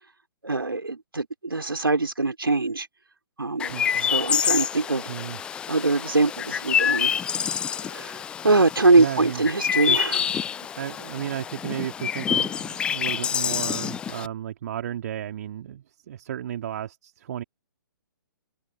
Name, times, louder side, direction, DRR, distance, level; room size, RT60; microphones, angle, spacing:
voice 1, 0.4-2.9 3.4-3.7 4.1-5.1 5.7-7.1 7.8-8.2 8.4-10.2, right 3 dB, 80° right, 4.3 m, -22 dB
Chirp tweet, 3.6-14.3, left 8 dB, 10° left, 0.3 m, -27 dB
voice 2, 3.7-4.1 4.4-4.5 5.1-5.4 9.0-9.4 9.9-10.1 10.7-17.4, right 10 dB, 45° right, 2.9 m, -33 dB
open air
figure-of-eight pair, 125°, 12 cm